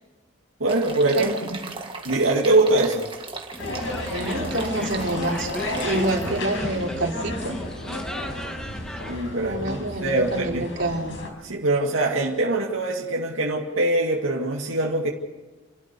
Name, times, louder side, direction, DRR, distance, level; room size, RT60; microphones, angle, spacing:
voice 1, 0.6-1.3 2.0-3.1 9.1-10.7 11.4-15.1, right 2 dB, 90° right, -1 dB, 2.3 m, -23 dB
sound 1, 0.7-6.8, right 4 dB, 25° right, 1.9 m, -38 dB
voice 2, 1.2-1.5 4.1-7.6 9.4-11.2, right 1 dB, 60° right, 0 dB, 3.7 m, -28 dB
sound 2, 3.5-9.2, equal, 5° left, 1.4 m, -36 dB
sound 3, 3.6-11.3, left 1 dB, 70° left, 5.1 m, -32 dB
30.0 x 12.5 x 6.9 m, 1.2 s
head